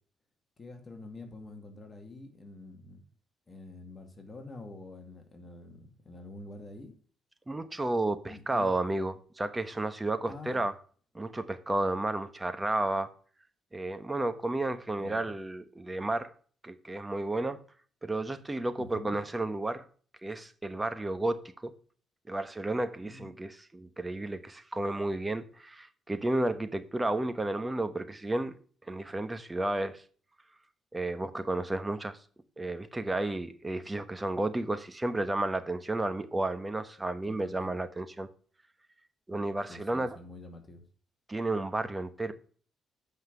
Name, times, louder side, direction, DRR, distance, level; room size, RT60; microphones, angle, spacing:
voice 1, 0.6-3.0 3.5-7.0 8.3-8.7 10.3-10.7 15.0-15.3 18.8-19.2 23.0-23.4 37.2-37.8 39.7-40.8, left 2 dB, 30° left, 2.2 m, -47 dB
voice 2, 7.5-10.7 11.1-13.1 13.7-16.3 16.6-17.6 18.0-19.9 20.2-21.7 22.3-28.5 28.9-30.0 30.9-32.2 32.6-38.3 39.3-40.2 41.3-42.3, right 2 dB, 15° right, 1.1 m, -32 dB
8.0 x 5.8 x 6.7 m
cardioid pair, 90°, 0 cm